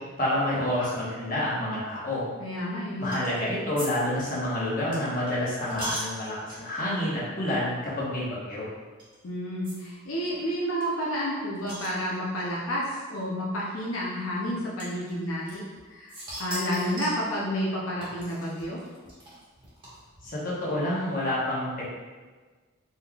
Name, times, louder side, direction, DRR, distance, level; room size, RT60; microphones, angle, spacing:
voice 1, 0.2-2.2 3.0-8.6 20.2-21.9, left 1 dB, 40° left, -7 dB, 1.1 m, -28 dB
voice 2, 2.4-3.1 9.2-18.8, equal, 80° left, -5 dB, 0.6 m, -30 dB
sound 1, 3.1-3.4 3.8-6.8 7.5-7.6 7.9-8.0 9.0-9.1 9.6-9.7 10.0-10.1 10.3-10.4 10.8-12.4 13.3-13.4 14.8-15.8 16.1-17.3 18.0-20.3, right 1 dB, 25° right, 1.3 m, -39 dB
4.2 x 3.7 x 2.4 m, 1.4 s
head